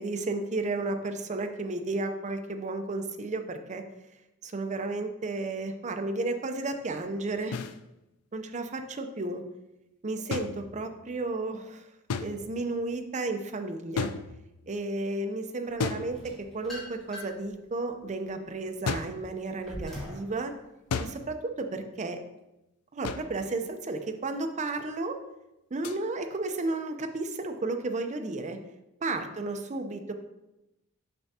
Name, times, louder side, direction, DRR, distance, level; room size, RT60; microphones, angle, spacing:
voice 1, 0.0-3.8 4.4-7.6 8.3-9.4 10.0-11.8 12.1-14.1 14.7-16.2 16.5-20.5 21.0-22.2 22.9-25.1 25.7-28.6 29.0-30.1, right 2 dB, 35° right, 6 dB, 0.5 m, -33 dB
sound 1, 7.5-7.8 10.3-11.1 12.1-12.7 14.0-14.7 15.8-16.6 18.9-19.3 20.9-21.4 23.0-23.5 25.8-26.0, left 5 dB, 90° left, 0.4 m, -34 dB
sound 2, 16.1-17.5 18.0-20.3, left 1 dB, ahead, 1.8 m, -42 dB
6.8 x 5.9 x 2.8 m, 0.92 s
head